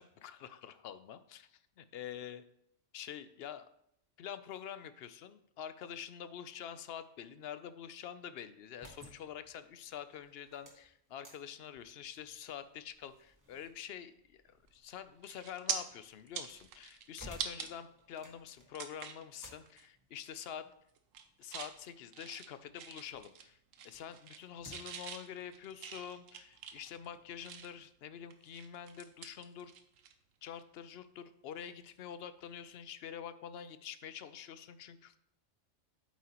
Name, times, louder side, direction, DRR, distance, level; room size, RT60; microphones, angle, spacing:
voice 1, 0.0-1.6 1.9-2.4 2.9-3.7 4.2-20.6 21.4-23.6 23.8-29.7 30.4-35.2, left 9 dB, 65° left, 12 dB, 0.7 m, -46 dB
sound 1, 8.6-23.3 23.7-25.1, equal, 15° right, 1.3 m, -59 dB
sound 2, 14.7-14.9 15.2-15.8 16.2-17.7 18.1-18.2 18.7-19.2 19.7-19.9 20.2-20.6 21.0-21.7 22.1-23.5 23.7-24.4 24.7-27.9 28.3-30.1 30.4-30.6 32.5-32.6, right 7 dB, 80° right, 1.1 m, -43 dB
8.7 x 7.2 x 2.9 m, 0.74 s
omnidirectional pair, 1.3 m